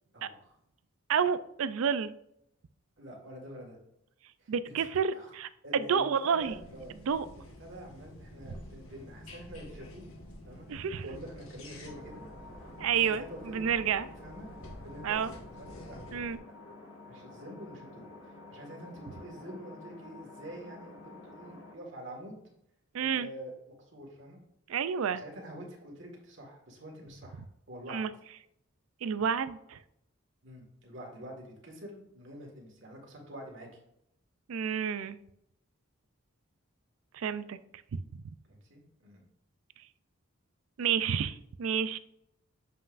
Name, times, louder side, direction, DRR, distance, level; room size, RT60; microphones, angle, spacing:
voice 1, 0.1-0.6 3.0-3.8 4.4-4.9 5.1-5.3 5.6-6.9 7.6-10.1 10.5-12.2 12.9-13.6 14.2-14.5 14.8-16.0 16.4-16.5 17.1-22.4 23.0-23.5 23.8-24.4 25.1-28.1 30.4-33.7 38.4-39.2, equal, 60° right, -1 dB, 1.7 m, -47 dB
voice 2, 1.1-2.1 4.5-6.5 7.1-7.3 10.7-11.1 12.8-14.1 15.0-15.3 16.1-16.4 22.9-23.3 24.7-25.2 27.9-28.1 29.0-29.8 34.5-35.2 37.1-37.6 37.9-38.0 40.8-42.0, right 7 dB, 75° right, 15 dB, 0.4 m, -30 dB
sound 1, 6.4-16.4, left 1 dB, 85° left, 1.4 m, -49 dB
sound 2, 11.8-21.7, left 2 dB, 60° left, 1.6 m, -50 dB
7.5 x 5.6 x 2.5 m, 0.79 s
head